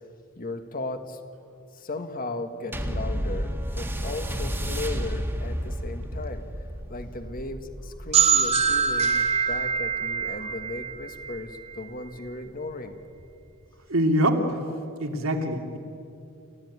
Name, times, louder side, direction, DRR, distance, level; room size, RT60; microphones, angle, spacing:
voice 1, 0.4-1.2 1.7-6.5 6.9-13.0, left 2 dB, 45° left, 7 dB, 1.8 m, -36 dB
sound 1, 2.7-11.5 12.3-12.4, equal, 10° right, 1.8 m, -32 dB
sound 2, 8.1-11.8, right 6 dB, 30° right, 2.3 m, -24 dB
voice 2, 13.9-14.6 15.0-15.8, equal, 80° right, 4 dB, 2.7 m, -24 dB
28.5 x 16.0 x 9.7 m, 2.6 s
head